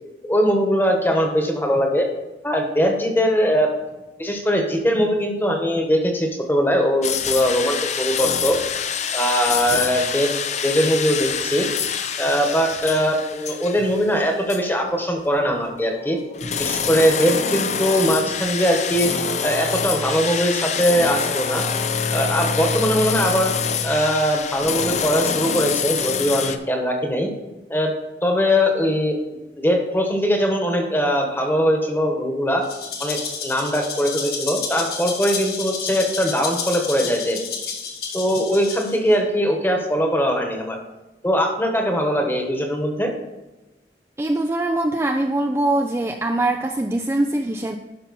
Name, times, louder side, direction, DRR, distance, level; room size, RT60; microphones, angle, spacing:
voice 1, 0.3-2.0 2.4-3.7 4.2-8.6 9.1-10.3 10.6-11.7 12.2-16.2 16.6-19.1 19.4-21.6 22.1-23.5 23.8-27.3 27.7-27.9 28.2-29.1 29.6-32.7 33.0-37.4 38.1-40.8 41.2-43.1, equal, 10° left, 2 dB, 1.3 m, -21 dB
sound 1, 7.0-14.2 14.5-14.6 15.6-26.6, left 6 dB, 40° left, 0.5 m, -26 dB
Rattle (instrument), 32.6-39.2, left 6 dB, 60° left, 1.6 m, -30 dB
voice 2, 44.2-47.8, right 2 dB, 15° right, 4 dB, 0.4 m, -22 dB
11.5 x 5.6 x 4.2 m, 1.1 s
head